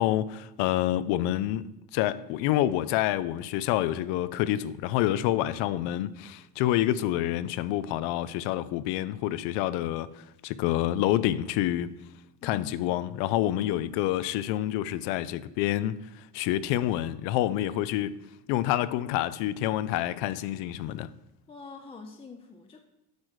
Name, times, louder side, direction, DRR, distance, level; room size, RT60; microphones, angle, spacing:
voice 1, 0.0-10.1 10.4-11.9 12.4-16.0 16.3-18.1 18.5-21.1, left 13 dB, 90° left, 0.5 m, -27 dB
voice 2, 12.4-12.9 21.5-22.8, left 3 dB, 15° left, 0.3 m, -45 dB
8.2 x 3.2 x 6.4 m
cardioid pair, 140°, 40 cm